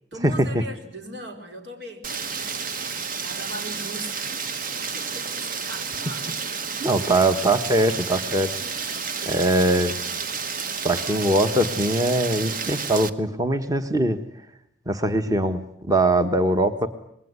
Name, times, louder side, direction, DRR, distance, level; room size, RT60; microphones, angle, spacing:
voice 1, 0.1-2.7 3.2-6.6 7.0-7.2 9.2-9.6 10.9-11.8 16.7-16.8, right 1 dB, 90° right, 4 dB, 4.5 m, -40 dB
Rain, 2.0-13.1, right 5 dB, 50° right, 1.2 m, -31 dB
voice 2, 6.8-8.5 9.3-10.0 10.8-14.2 14.9-16.9, right 1 dB, 20° right, 9 dB, 1.2 m, -22 dB
26.5 x 20.5 x 9.6 m, 0.76 s
head